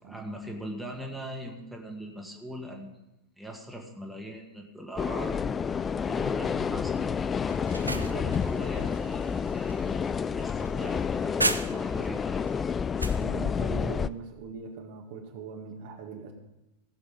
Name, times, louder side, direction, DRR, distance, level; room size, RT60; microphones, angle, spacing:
voice 1, 0.0-2.9 3.4-7.2 7.8-12.5, equal, 5° right, 1 dB, 1.8 m, -41 dB
sound 1, 5.0-14.1, left 6 dB, 20° left, 0.3 m, -29 dB
sound 2, 7.5-12.1 12.5-13.2, right 2 dB, 85° right, 0.6 m, -35 dB
voice 2, 7.7-8.3 13.2-16.3, right 6 dB, 50° right, 2 dB, 1.9 m, -41 dB
16.5 x 7.0 x 5.4 m, 0.93 s
figure-of-eight pair, 90°, 0 cm